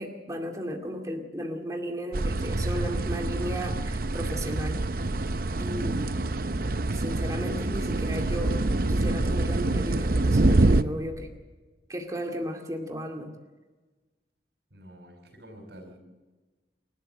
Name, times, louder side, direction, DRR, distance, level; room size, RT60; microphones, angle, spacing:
voice 1, 0.0-4.8 5.6-6.1 6.9-8.6 8.9-11.3 11.9-13.3, equal, 20° right, 2 dB, 2.2 m, -34 dB
sound 1, 2.1-10.8, right 2 dB, 55° right, 0.7 m, -26 dB
voice 2, 14.7-16.0, equal, 70° right, 2 dB, 5.0 m, -48 dB
28.0 x 13.0 x 7.7 m, 1.3 s
head